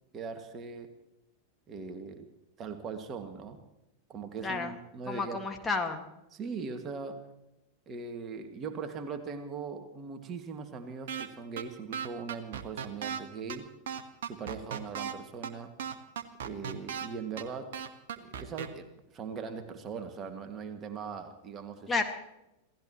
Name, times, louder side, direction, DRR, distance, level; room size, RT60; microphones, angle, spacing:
voice 1, 0.1-0.9 1.7-2.3 2.6-3.6 4.1-5.4 6.3-7.3 7.9-13.7 14.2-15.7 16.4-17.8 18.2-21.9, right 5 dB, 30° right, 6 dB, 2.0 m, -40 dB
voice 2, 4.4-4.8 5.1-6.1 21.9-22.0, left 4 dB, 15° left, 3 dB, 1.8 m, -31 dB
sound 1, 11.1-11.3 11.6-11.7 11.9-13.2 13.5-13.6 13.9-15.1 15.4-15.5 15.8-17.1 17.4-17.5 17.7-18.7, right 8 dB, 55° right, 1.4 m, -36 dB
28.0 x 16.5 x 3.1 m, 0.88 s
figure-of-eight pair, 90°, 0 cm